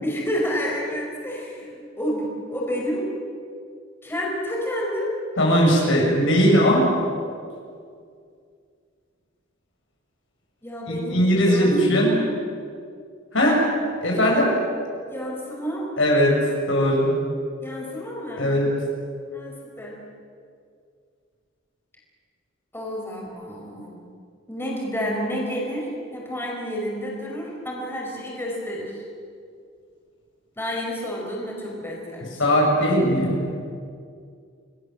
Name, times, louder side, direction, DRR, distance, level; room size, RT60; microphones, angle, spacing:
voice 1, 0.0-3.1 4.0-5.1 10.6-12.3 15.1-15.9 17.6-18.5 19.3-20.0 22.7-24.1 24.5-29.0 30.6-32.6, equal, 10° left, -3 dB, 5.5 m, -30 dB
voice 2, 5.4-6.9 10.9-12.1 13.3-13.6 14.0-14.5 16.0-16.4 16.7-17.1 18.4-18.7 32.4-33.4, equal, 70° left, -1 dB, 6.7 m, -19 dB
28.5 x 19.5 x 7.6 m, 2.2 s
head